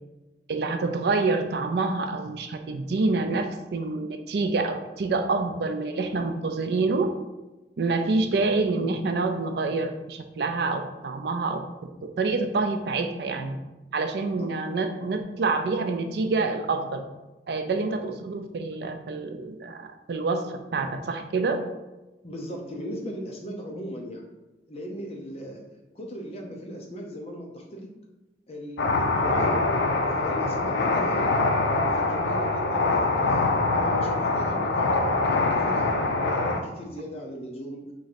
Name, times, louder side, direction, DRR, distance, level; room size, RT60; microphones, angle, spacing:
voice 1, 0.5-7.1 7.8-11.6 12.2-13.6 13.9-17.0 17.5-21.6, right 3 dB, 65° right, 6 dB, 0.4 m, -27 dB
voice 2, 22.2-24.3 24.7-25.6 25.9-27.9 28.5-29.6 30.1-31.5 31.9-33.5 33.8-35.9 36.2-37.9, equal, 35° left, 0 dB, 0.6 m, -38 dB
sound 1, 28.8-36.6, left 3 dB, 85° left, 0.4 m, -24 dB
3.0 x 2.6 x 4.1 m, 1.1 s
head